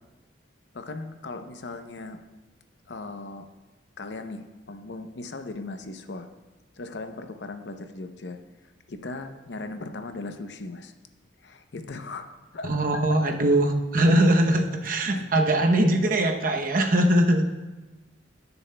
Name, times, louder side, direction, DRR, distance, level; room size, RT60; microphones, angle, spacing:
voice 1, 0.7-2.2 2.9-3.5 4.0-6.3 6.8-8.4 8.9-10.9 11.4-13.2 15.1-15.3, left 3 dB, 65° left, 7 dB, 0.6 m, -38 dB
voice 2, 12.6-17.5, right 1 dB, 45° right, 3 dB, 0.8 m, -21 dB
18.0 x 6.9 x 2.2 m, 1.2 s
head